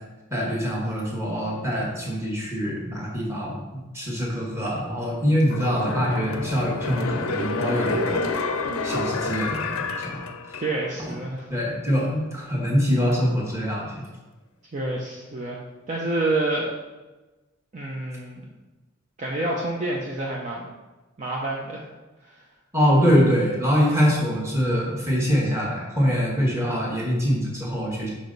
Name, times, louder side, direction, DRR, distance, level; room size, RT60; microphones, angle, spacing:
voice 1, 0.3-8.4 8.8-10.2 10.5-10.6 11.0-11.1 11.5-14.0 22.7-28.1, equal, 15° right, -3 dB, 1.4 m, -24 dB
sound 1, 5.5-11.0 11.4-11.5, left 3 dB, 85° left, 0.5 m, -29 dB
voice 2, 10.6-11.5 14.7-16.7 17.7-18.4 19.2-20.7 21.2-21.8 22.2-22.4, right 2 dB, 35° right, -3 dB, 0.6 m, -28 dB
5.4 x 4.9 x 3.9 m, 1.2 s
head